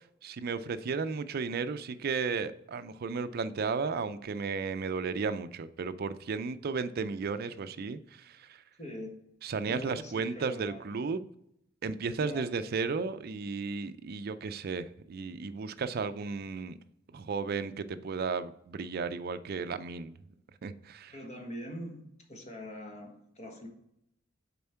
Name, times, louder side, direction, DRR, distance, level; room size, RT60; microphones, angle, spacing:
voice 1, 0.2-8.6 9.4-11.2 11.8-16.8 17.1-20.1 20.6-21.2, right 5 dB, 50° right, 0.4 m, -34 dB
voice 2, 8.8-9.2 9.7-10.8 12.2-12.5 21.1-23.7, equal, 35° left, 1.3 m, -43 dB
6.9 x 4.4 x 4.4 m
head